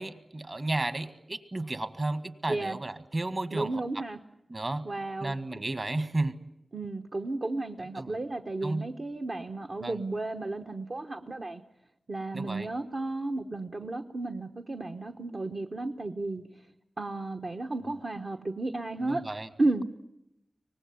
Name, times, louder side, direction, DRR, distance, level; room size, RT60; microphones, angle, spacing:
voice 1, 0.0-3.7 4.5-4.8 5.2-6.3 8.0-8.1 8.6-8.9 9.8-9.9 12.3-12.7 19.0-19.5, right 2 dB, 45° right, 12 dB, 1.7 m, -33 dB
voice 2, 2.5-2.8 3.5-4.2 4.8-5.4 6.7-11.6 12.1-16.4 17.0-19.2 19.6-19.8, right 2 dB, 60° right, 3 dB, 1.1 m, -33 dB
24.0 x 19.0 x 9.6 m, 0.84 s
cardioid pair, 50°, 0 cm